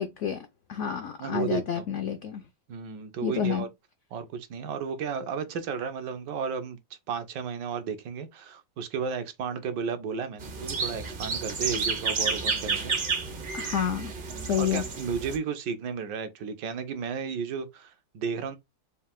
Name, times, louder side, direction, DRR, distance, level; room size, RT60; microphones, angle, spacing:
voice 1, 0.0-2.4 3.2-3.7 13.5-14.1 14.4-14.8, left 8 dB, 80° left, 0.6 m, -29 dB
voice 2, 1.2-1.8 2.7-3.7 4.1-6.8 7.1-13.0 14.3-18.6, right 6 dB, 75° right, 1.3 m, -33 dB
sound 1, 10.4-15.4, right 5 dB, 55° right, 0.6 m, -31 dB
4.2 x 2.4 x 3.5 m
omnidirectional pair, 1.9 m